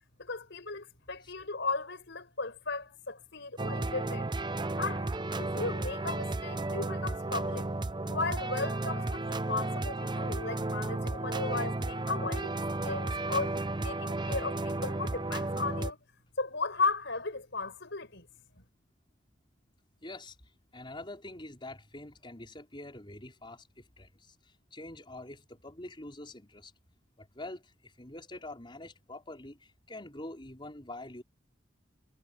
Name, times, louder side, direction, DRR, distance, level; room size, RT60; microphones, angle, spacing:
voice 1, 0.2-4.3 4.8-5.1 5.4-7.7 8.1-13.5 13.8-16.0 16.4-18.3, left 3 dB, 60° left, 5.8 m, -35 dB
sound 1, 3.6-15.9, right 2 dB, 20° right, 0.6 m, -33 dB
voice 2, 20.0-20.3 20.7-24.3 24.7-26.7 27.2-27.6 28.0-29.6 29.9-31.2, left 2 dB, 25° left, 5.0 m, -45 dB
head